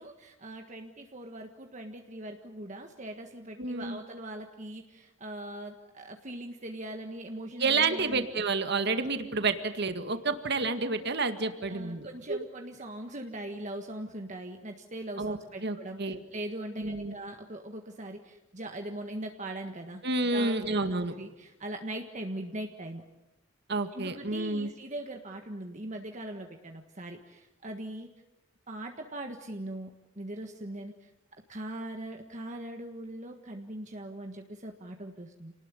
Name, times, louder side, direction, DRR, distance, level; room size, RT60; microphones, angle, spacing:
voice 1, 0.0-8.3 11.7-20.0 20.3-20.7 21.2-23.0 23.9-28.1 28.7-29.9 30.1-31.1 31.5-35.5, right 1 dB, 35° right, 4 dB, 1.6 m, -40 dB
voice 2, 3.6-4.0 7.6-12.4 15.2-16.2 16.8-17.1 20.0-21.1 23.7-24.7, right 3 dB, 55° right, 8 dB, 2.0 m, -30 dB
28.5 x 19.5 x 9.9 m, 0.96 s
head